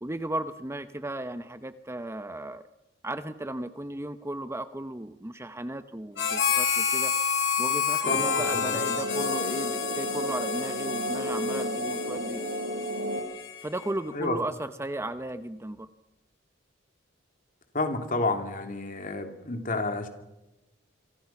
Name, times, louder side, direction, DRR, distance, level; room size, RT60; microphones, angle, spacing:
voice 1, 0.0-2.6 3.0-7.1 7.6-12.4 13.6-15.9, right 1 dB, 15° right, 11 dB, 0.8 m, -35 dB
Harmonica, 6.2-13.9, left 7 dB, 75° left, 3.8 m, -29 dB
sound 1, 8.0-13.2, equal, 75° right, 6.2 m, -32 dB
voice 2, 17.7-20.1, left 2 dB, 45° left, 5 dB, 3.0 m, -30 dB
27.5 x 25.0 x 5.9 m, 0.98 s
head